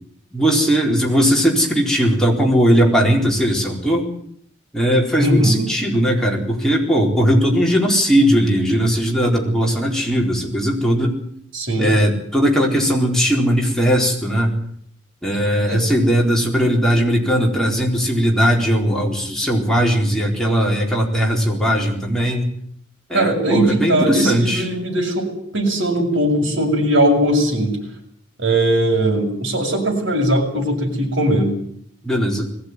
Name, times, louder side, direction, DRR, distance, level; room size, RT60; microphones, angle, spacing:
voice 1, 0.3-4.1 4.7-11.2 11.8-14.6 15.2-22.5 23.1-24.7 32.0-32.5, equal, 5° left, -1 dB, 4.3 m, -18 dB
voice 2, 5.2-5.6 11.5-11.9 15.7-15.8 23.1-27.8 28.4-31.6, right 1 dB, 65° right, 0 dB, 7.4 m, -19 dB
21.5 x 15.0 x 9.7 m, 0.68 s
head